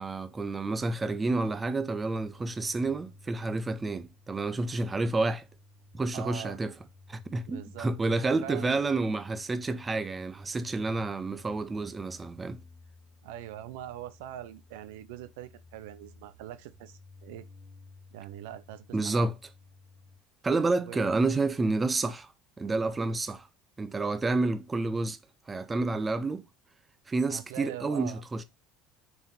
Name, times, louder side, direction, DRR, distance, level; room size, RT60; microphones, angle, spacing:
voice 1, 0.0-5.4 5.9-6.7 7.1-12.6 18.9-19.3 20.4-22.3 22.6-23.5 23.8-25.2 25.5-26.4 27.1-28.4, right 3 dB, 15° right, 0.6 m, -29 dB
sound 1, 1.0-20.2, left 3 dB, 5° left, 1.6 m, -55 dB
voice 2, 6.1-6.6 7.5-7.9 8.2-8.8 13.2-17.5 18.1-19.3 20.9-21.0 27.3-28.2, right 12 dB, 90° right, 0.7 m, -42 dB
6.8 x 4.2 x 4.0 m
cardioid pair, 145°, 0 cm